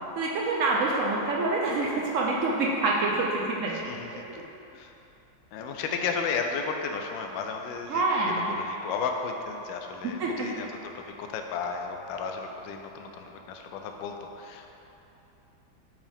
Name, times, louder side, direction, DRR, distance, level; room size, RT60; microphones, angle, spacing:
voice 1, 0.2-3.7 4.1-4.2 7.9-8.6 10.0-10.5, right 3 dB, 80° right, -3 dB, 0.7 m, -26 dB
voice 2, 3.7-4.3 4.7-4.9 5.5-8.0 8.5-14.7, left 5 dB, 75° left, 4 dB, 1.3 m, -34 dB
8.0 x 4.9 x 3.5 m, 3.0 s
omnidirectional pair, 2.2 m